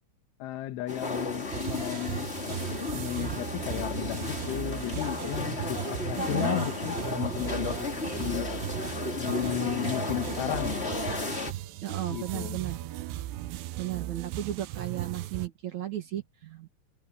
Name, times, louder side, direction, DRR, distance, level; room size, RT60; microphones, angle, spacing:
voice 1, 0.4-2.6 2.9-8.5 9.2-11.0 12.1-12.6, left 15 dB, 80° left, 3.6 m, -34 dB
sound 1, 0.9-11.5, left 3 dB, 50° left, 0.7 m, -34 dB
sound 2, 1.5-15.5, right 14 dB, 80° right, 2.6 m, -37 dB
sound 3, 2.8-13.5, right 1 dB, 10° right, 7.6 m, -56 dB
voice 2, 6.2-6.6 11.8-12.9 13.8-16.7, right 12 dB, 60° right, 2.0 m, -35 dB
omnidirectional pair, 5.6 m